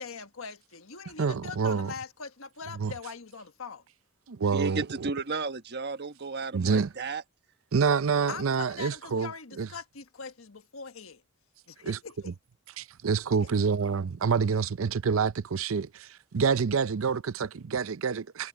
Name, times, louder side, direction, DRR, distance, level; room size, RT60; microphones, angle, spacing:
voice 1, 0.0-3.8 8.3-11.2 11.7-12.3, left 5 dB, 70° left, 1.5 m, -42 dB
voice 2, 1.2-1.9 2.8-2.9 4.3-5.1 6.5-6.9 7.7-9.3 9.6-9.7 11.8-12.0 12.8-18.5, right 5 dB, 65° right, 0.5 m, -27 dB
voice 3, 4.5-7.2, right 4 dB, 50° right, 1.3 m, -33 dB
head